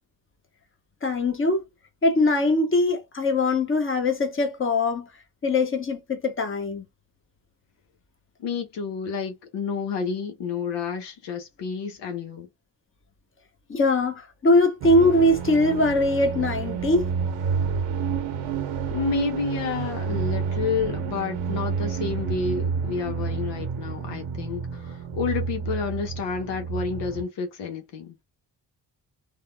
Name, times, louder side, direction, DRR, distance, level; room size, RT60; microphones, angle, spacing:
voice 1, 1.0-1.6 2.0-5.1 5.4-6.8 13.7-17.1, left 2 dB, 30° left, 1.1 m, -21 dB
voice 2, 8.4-12.5 18.9-28.1, left 5 dB, 70° left, 1.0 m, -30 dB
sound 1, 14.8-27.2, right 6 dB, 80° right, 0.9 m, -29 dB
3.4 x 2.2 x 2.2 m
supercardioid pair, 55°, 44 cm